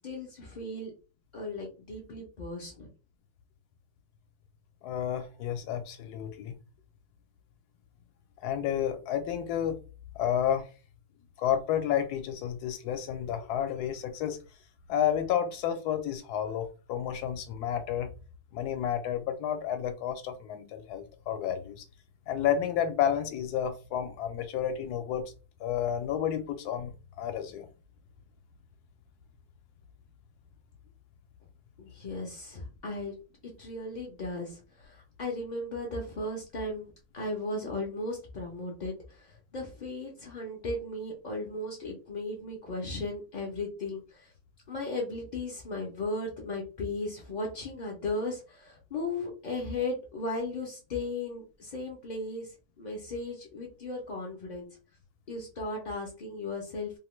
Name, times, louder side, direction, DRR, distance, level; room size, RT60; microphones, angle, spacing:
voice 1, 0.0-0.9 1.3-2.9 31.8-33.1 33.6-36.9 37.1-44.3 44.7-52.5 52.8-54.7 55.3-56.9, left 2 dB, 60° left, 0.4 m, -36 dB
voice 2, 4.8-6.6 8.4-9.8 10.2-10.7 11.4-14.4 14.9-18.1 18.5-21.8 22.3-25.3 25.6-27.7, left 9 dB, 80° left, 1.1 m, -31 dB
2.8 x 2.1 x 3.0 m
omnidirectional pair, 1.7 m